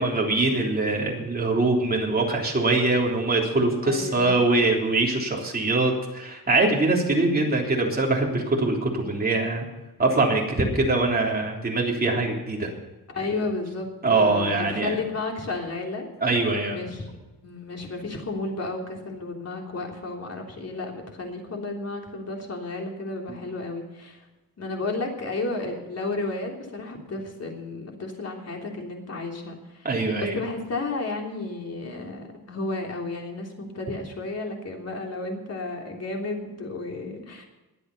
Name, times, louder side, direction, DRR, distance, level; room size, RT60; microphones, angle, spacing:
voice 1, 0.0-9.7 10.0-12.7 14.0-15.0 16.2-16.8 29.8-30.4, right 2 dB, 25° right, -1 dB, 3.5 m, -23 dB
voice 2, 3.8-4.4 13.1-16.1 16.7-17.1 17.4-24.2 24.6-29.9 30.2-37.4, left 3 dB, 45° left, 1 dB, 3.4 m, -32 dB
21.5 x 8.2 x 5.5 m, 1.1 s
wide cardioid pair, 155°, 35 cm